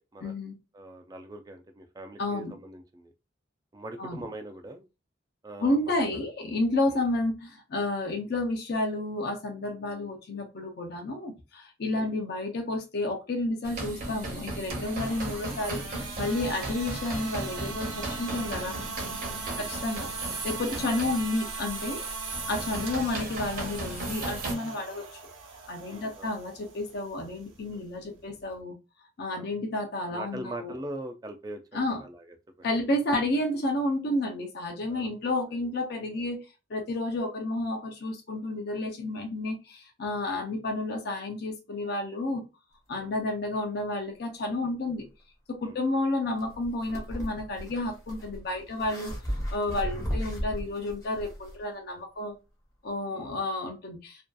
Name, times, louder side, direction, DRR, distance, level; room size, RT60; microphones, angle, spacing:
voice 1, 0.2-0.6 2.2-2.5 4.0-4.2 5.6-18.8 19.6-22.0 22.5-25.2 25.7-28.8 29.2-30.7 31.7-32.0 32.6-36.4 36.7-42.4 42.9-45.1 45.5-49.1 49.5-52.4 52.8-54.2, left 2 dB, 55° left, 3 dB, 0.5 m, -31 dB
voice 2, 0.7-3.1 3.7-4.9 5.4-6.3 11.9-12.1 19.4-19.7 25.9-26.3 29.3-29.5 30.1-31.6 32.0-32.7 34.9-35.1 40.3-40.4 43.0-43.1 45.6-45.8 53.1-53.3, right 1 dB, 20° right, 5 dB, 0.3 m, -42 dB
sound 1, 13.6-24.5, right 2 dB, 45° right, 0.8 m, -36 dB
sound 2, 14.6-28.6, right 4 dB, 85° right, 0.8 m, -41 dB
sound 3, 46.4-51.6, equal, 15° left, 0.7 m, -35 dB
2.6 x 2.3 x 2.2 m, 0.28 s
head